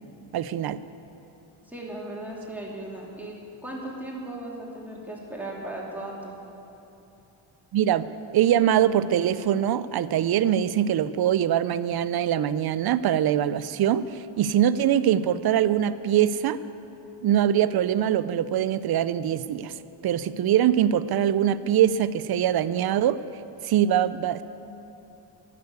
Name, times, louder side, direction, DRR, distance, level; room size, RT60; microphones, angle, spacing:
voice 1, 0.3-0.8 7.7-8.1 8.3-16.6 17.2-19.7 20.0-23.2 23.6-24.4, right 10 dB, 55° right, 15 dB, 0.6 m, -23 dB
voice 2, 1.6-6.3, right 1 dB, 5° right, -4 dB, 2.9 m, -37 dB
11.5 x 6.9 x 9.5 m, 2.9 s
cardioid pair, 80°, 47 cm